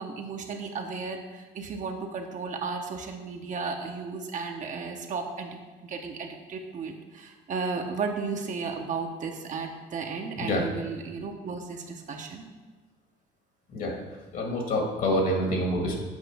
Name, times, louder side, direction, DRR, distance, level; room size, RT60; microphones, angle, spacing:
voice 1, 0.0-5.6 5.8-12.4, right 4 dB, 50° right, 3 dB, 0.9 m, -34 dB
voice 2, 13.7-14.0 14.3-16.0, left 1 dB, 55° left, 1 dB, 1.7 m, -27 dB
8.2 x 5.2 x 3.5 m, 1.3 s
cardioid pair, 110°, 17 cm